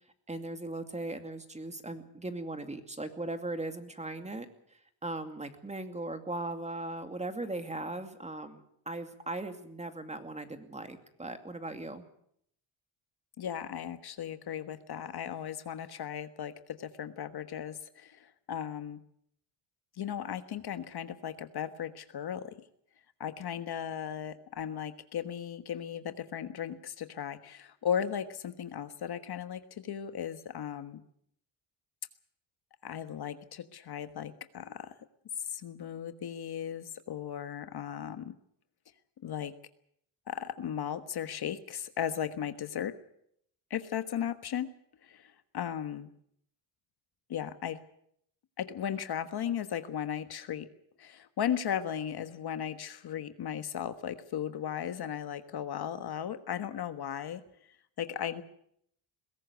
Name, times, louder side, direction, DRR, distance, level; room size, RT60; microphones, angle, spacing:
voice 1, 0.3-12.0, right 2 dB, 15° right, 7 dB, 2.4 m, -39 dB
voice 2, 13.4-19.0 19.9-22.6 23.2-31.0 32.8-34.9 35.4-38.3 39.2-39.5 40.3-42.9 43.7-44.7 45.0-46.1 47.3-47.8 48.6-50.7 51.0-57.4 58.0-58.4, left 9 dB, 55° left, 10 dB, 1.4 m, -36 dB
21.5 x 17.0 x 8.2 m, 0.71 s
cardioid pair, 100°, 47 cm